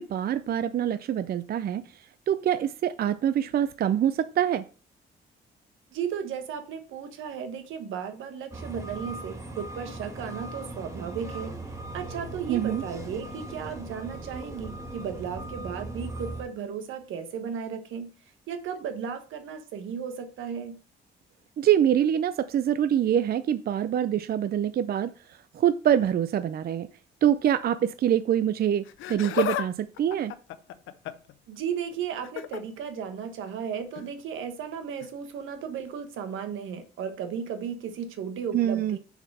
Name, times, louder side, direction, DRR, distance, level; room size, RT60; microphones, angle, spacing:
voice 1, 0.0-4.6 12.5-12.8 21.6-26.9 27.2-30.3 38.5-39.0, right 10 dB, 50° right, 0.5 m, -25 dB
voice 2, 5.9-11.5 11.9-18.1 18.5-20.8 31.5-39.0, right 7 dB, 80° right, 1.3 m, -35 dB
sound 1, 8.5-16.4, right 2 dB, 15° right, 1.5 m, -39 dB
Laughter, 28.8-29.7 30.0-31.3 32.2-32.6 33.9-34.1 35.0-35.1, left 12 dB, 85° left, 0.7 m, -32 dB
7.0 x 4.8 x 5.4 m
cardioid pair, 90°, 20 cm